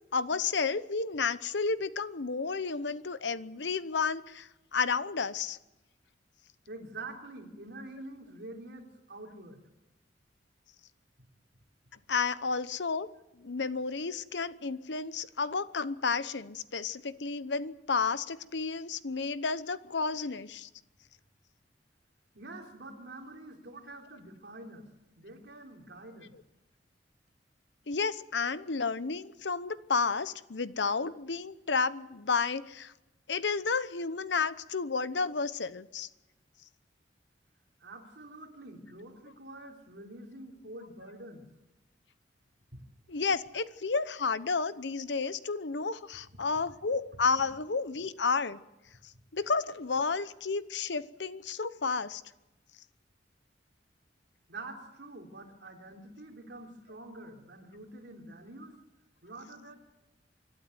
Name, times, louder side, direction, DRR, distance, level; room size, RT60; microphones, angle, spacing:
voice 1, 0.1-5.6 12.1-13.1 13.4-20.7 27.9-32.9 33.3-36.1 43.1-48.6 49.3-52.2, left 4 dB, 75° left, 15 dB, 0.9 m, -31 dB
voice 2, 6.7-9.6 22.3-26.3 37.8-41.5 42.7-42.8 54.5-58.8 59.2-59.8, right 2 dB, 65° right, 2 dB, 3.7 m, -46 dB
26.0 x 12.5 x 9.4 m, 0.95 s
head